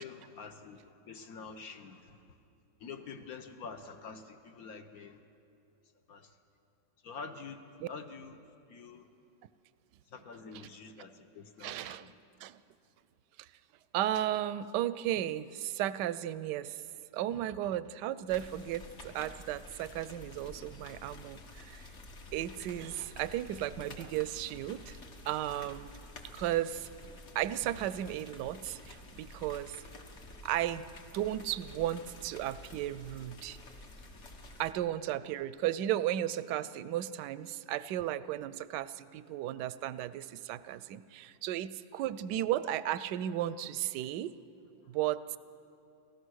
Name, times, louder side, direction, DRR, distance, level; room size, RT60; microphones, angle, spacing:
voice 1, 0.0-2.2 2.8-5.2 6.1-6.3 7.0-8.4 8.7-9.1 10.1-12.2 44.8-44.9, left 5 dB, 55° left, 8 dB, 1.3 m, -47 dB
voice 2, 11.6-12.0 12.4-12.6 13.4-13.5 13.9-16.8 17.1-21.9 22.3-25.0 25.3-25.9 26.3-29.8 30.4-30.9 31.1-33.6 34.6-44.4 44.9-45.4, right 12 dB, 70° right, 16 dB, 1.1 m, -35 dB
sound 1, 18.3-34.7, left 2 dB, 40° left, 1.6 m, -50 dB
29.5 x 14.5 x 6.4 m, 2.7 s
omnidirectional pair, 2.1 m